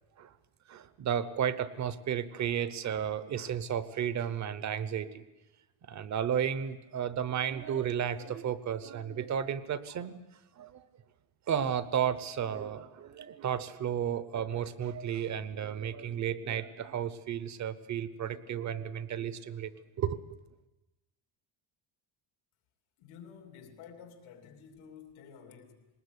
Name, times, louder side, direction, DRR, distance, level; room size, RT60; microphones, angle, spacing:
voice 1, 0.7-5.2 5.9-10.2 10.6-10.8 11.5-19.7 20.0-20.2, right 9 dB, 35° right, 15 dB, 0.8 m, -33 dB
voice 2, 23.0-25.9, left 7 dB, 85° left, 5 dB, 3.0 m, -51 dB
20.5 x 19.5 x 8.2 m, 1.0 s
cardioid pair, 175°, 48 cm